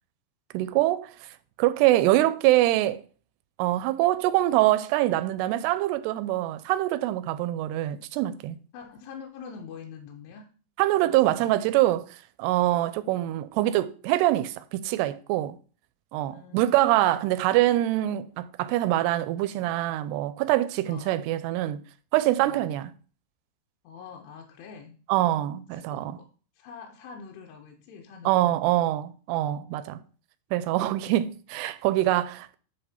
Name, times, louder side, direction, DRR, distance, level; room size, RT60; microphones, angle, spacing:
voice 1, 0.5-1.1 1.6-3.0 3.6-8.6 10.8-12.0 12.4-15.6 16.1-21.8 22.1-22.9 25.1-26.2 28.3-30.0 30.5-32.6, right 15 dB, 85° right, 2.6 m, -24 dB
voice 2, 8.7-10.5 11.1-11.7 16.3-16.7 20.9-21.3 22.4-22.8 23.8-25.0 25.7-26.3 26.6-28.6, left 6 dB, 90° left, 2.9 m, -45 dB
10.0 x 3.5 x 4.3 m
omnidirectional pair, 4.8 m